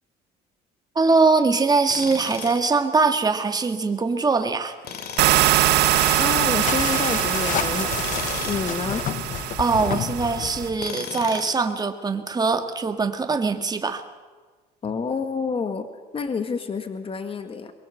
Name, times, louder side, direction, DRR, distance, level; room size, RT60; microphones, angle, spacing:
voice 1, 1.0-4.8 9.6-14.0, right 4 dB, 25° right, 6 dB, 2.0 m, -22 dB
Tools, 1.9-2.7 4.8-5.7 7.9-8.8 10.8-11.7, left 7 dB, 70° left, 2.5 m, -36 dB
sound 1, 5.2-10.7, right 16 dB, 85° right, 1.0 m, -23 dB
sound 2, 5.4-10.9, left 10 dB, 50° left, 0.6 m, -31 dB
voice 2, 6.2-7.9 8.4-9.1 14.8-15.9 16.1-17.7, left 5 dB, 35° left, 8 dB, 1.9 m, -28 dB
22.5 x 22.5 x 7.9 m, 1.4 s
cardioid pair, 110°, 17 cm